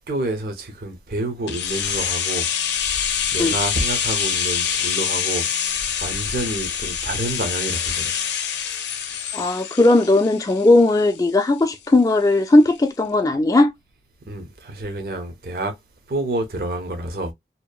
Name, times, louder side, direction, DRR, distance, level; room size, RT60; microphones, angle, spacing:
voice 1, 0.1-2.5 2.8-8.1 14.3-15.8 16.1-17.3, right 2 dB, 55° right, 0.6 m, -29 dB
sound 1, 1.5-11.3 11.6-11.7, left 8 dB, 75° left, 0.5 m, -25 dB
voice 2, 9.3-13.7, left 2 dB, 20° left, 0.3 m, -17 dB
2.7 x 2.0 x 2.2 m
head